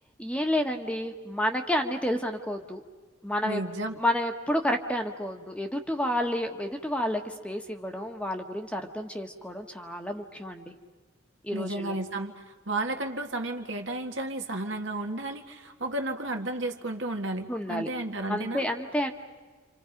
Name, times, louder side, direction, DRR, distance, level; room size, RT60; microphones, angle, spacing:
voice 1, 0.2-2.8 3.2-3.6 4.0-10.7 11.4-12.0 17.5-17.9 18.3-19.1, equal, 5° left, 4 dB, 1.4 m, -30 dB
voice 2, 3.4-4.0 11.5-18.7, right 2 dB, 60° right, 4 dB, 2.0 m, -33 dB
30.0 x 27.0 x 5.3 m, 1.3 s
head